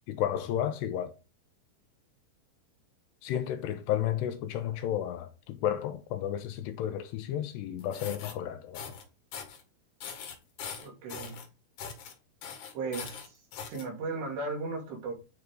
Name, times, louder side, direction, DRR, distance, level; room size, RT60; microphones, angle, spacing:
voice 1, 0.1-1.1 3.2-9.0, left 11 dB, 80° left, 2.9 m, -32 dB
sound 1, 7.8-8.3 8.7-9.0 9.3-9.6 10.0-11.5 11.8-12.1 12.4-13.8, left 7 dB, 60° left, 2.5 m, -41 dB
voice 2, 10.8-11.4 12.7-13.4 13.7-15.1, right 3 dB, 75° right, 4.8 m, -36 dB
11.0 x 4.6 x 3.7 m
omnidirectional pair, 5.0 m